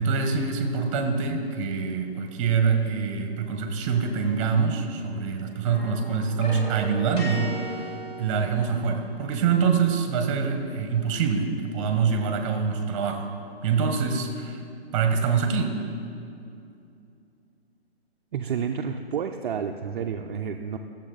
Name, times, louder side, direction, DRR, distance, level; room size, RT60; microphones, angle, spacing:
voice 1, 0.0-7.9 8.2-13.3 13.6-14.6 14.9-15.8, right 5 dB, 30° right, 5 dB, 1.0 m, -25 dB
sound 1, 4.2-5.3 5.6-9.1, right 1 dB, 25° left, 1.2 m, -38 dB
voice 2, 18.3-20.8, right 7 dB, 50° right, 4 dB, 0.5 m, -30 dB
13.0 x 7.2 x 3.8 m, 2.6 s
hypercardioid pair, 145°, 31 cm